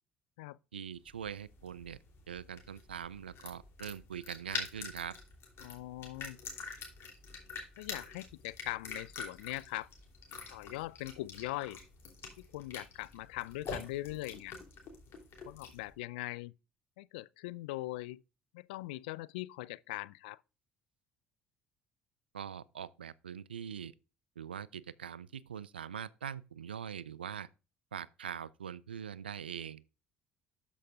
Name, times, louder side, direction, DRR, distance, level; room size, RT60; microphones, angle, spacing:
voice 1, 0.7-2.0 2.3-5.2 22.3-23.9 24.4-27.5 27.9-29.8, right 8 dB, 80° right, 0.3 m, -43 dB
sound 1, 1.1-15.9, left 4 dB, 50° left, 3.1 m, -46 dB
voice 2, 5.6-6.4 7.8-9.9 10.5-11.8 12.4-14.6 15.4-16.5 17.0-18.2 18.5-20.4, left 18 dB, 70° left, 0.3 m, -41 dB
13.0 x 5.4 x 2.4 m
figure-of-eight pair, 55°, 5 cm